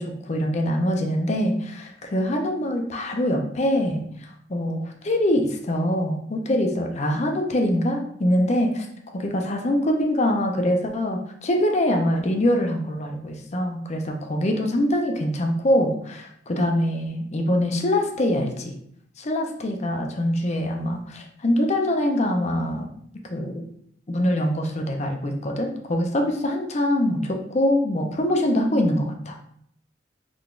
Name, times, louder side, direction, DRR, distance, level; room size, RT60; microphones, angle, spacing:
voice 1, 0.0-8.9 9.1-18.7 19.2-22.9 23.3-23.7 24.1-29.4, left 1 dB, 35° left, 3 dB, 0.5 m, -24 dB
3.8 x 3.3 x 2.4 m, 0.67 s
head